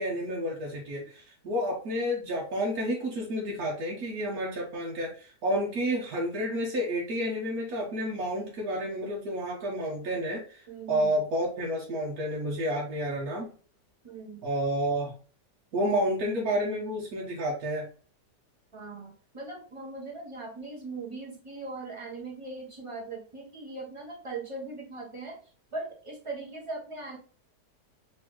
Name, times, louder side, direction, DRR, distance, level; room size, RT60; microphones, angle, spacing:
voice 1, 0.0-13.5 14.4-15.1 15.7-17.9, equal, 65° right, -3 dB, 1.5 m, -30 dB
voice 2, 10.7-11.2 14.0-14.4 18.7-25.4 25.7-27.2, right 3 dB, 20° right, -3 dB, 1.4 m, -40 dB
4.1 x 3.5 x 2.9 m, 0.40 s
omnidirectional pair, 1.7 m